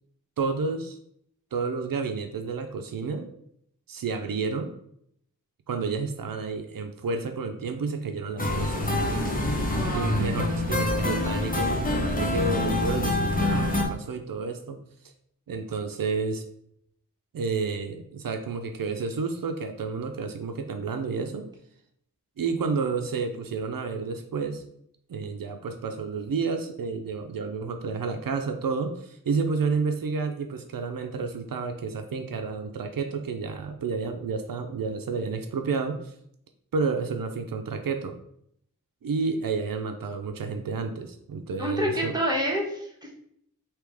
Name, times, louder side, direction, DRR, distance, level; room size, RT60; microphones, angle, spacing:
voice 1, 0.4-1.0 1.5-3.3 3.9-4.7 5.7-8.9 9.9-14.8 15.5-16.4 17.3-21.5 22.4-24.6 25.1-36.1 36.7-38.1 39.0-42.1, right 4 dB, 85° right, 5 dB, 0.5 m, -30 dB
sound 1, 8.4-13.8, left 1 dB, 25° left, 1.0 m, -26 dB
voice 2, 9.7-10.2 41.6-43.1, equal, 10° right, -3 dB, 1.4 m, -28 dB
3.4 x 2.9 x 4.7 m, 0.70 s
wide cardioid pair, 80°, 33 cm